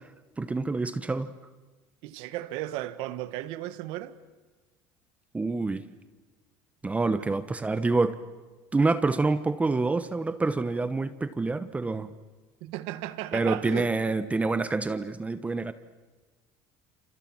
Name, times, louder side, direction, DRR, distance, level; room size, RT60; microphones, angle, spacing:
voice 1, 0.4-1.3 5.3-5.8 6.8-8.2 8.7-12.1 13.3-15.7, right 3 dB, 15° right, 1.1 m, -27 dB
voice 2, 2.0-4.2 7.1-7.4 12.6-13.9, right 15 dB, 75° right, 1.6 m, -35 dB
29.5 x 28.0 x 6.2 m
cardioid pair, 125°, 9 cm